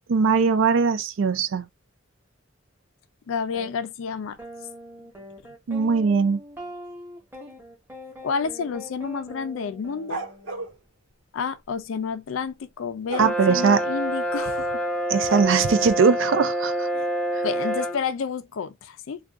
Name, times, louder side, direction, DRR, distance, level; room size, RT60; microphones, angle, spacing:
voice 1, 0.1-1.6 5.7-6.4 13.2-13.8 15.1-16.9, right 5 dB, 70° right, 0.4 m, -20 dB
voice 2, 3.3-4.4 8.2-10.2 11.3-14.8 16.9-17.1 17.4-19.2, left 6 dB, 75° left, 0.4 m, -30 dB
sound 1, 3.5-3.7 4.4-10.7, equal, 10° right, 0.9 m, -42 dB
sound 2, 10.1-10.7 13.1-13.4 15.3-15.4, right 3 dB, 90° right, 1.2 m, -32 dB
Brass instrument, 13.1-18.0, right 1 dB, 5° left, 0.4 m, -27 dB
2.5 x 2.3 x 3.5 m
head